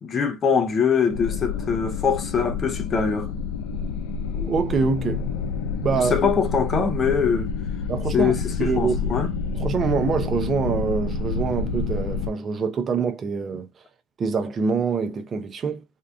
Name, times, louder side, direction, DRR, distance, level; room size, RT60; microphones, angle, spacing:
voice 1, 0.0-3.3 5.9-7.5 8.1-9.3, left 6 dB, 35° left, 0.8 m, -23 dB
sound 1, 1.1-12.3, left 5 dB, 65° left, 0.5 m, -28 dB
voice 2, 4.3-5.2 5.8-6.2 7.9-9.1 9.5-13.7 14.2-15.8, right 5 dB, 35° right, 0.7 m, -25 dB
3.6 x 2.4 x 2.3 m
hypercardioid pair, 80°, 0 cm